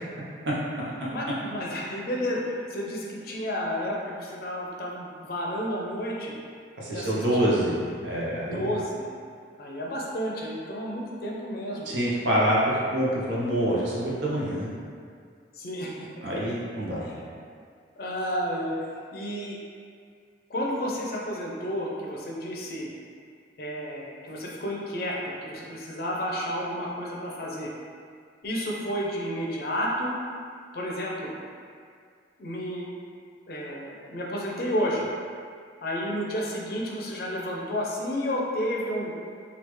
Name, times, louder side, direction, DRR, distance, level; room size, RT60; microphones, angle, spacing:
voice 1, 1.1-6.4 6.9-7.7 8.5-9.1 9.6-11.9 15.5-16.3 17.0-17.2 18.0-19.6 20.5-22.9 23.6-27.7 28.4-30.1 30.7-31.3 32.4-32.9 33.5-35.1 35.8-39.1, equal, 55° left, -3 dB, 0.5 m, -31 dB
voice 2, 6.8-8.7 11.9-14.7 16.2-17.1, equal, 80° right, -6 dB, 0.8 m, -26 dB
3.4 x 2.4 x 3.1 m, 2.2 s
head